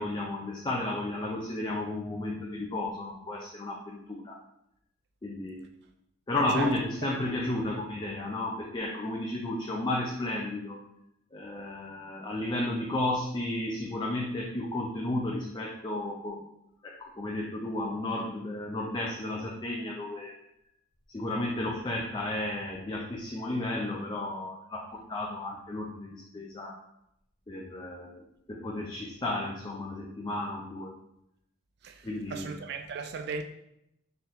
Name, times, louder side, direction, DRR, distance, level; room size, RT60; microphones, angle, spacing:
voice 1, 0.0-4.4 5.2-5.7 6.3-10.8 11.3-16.4 16.8-20.3 21.1-26.7 27.5-28.2 28.5-30.9 32.0-32.5, left 1 dB, 20° left, 0.4 m, -33 dB
voice 2, 32.3-33.4, right 4 dB, 55° right, 0.3 m, -36 dB
4.3 x 3.8 x 2.6 m
head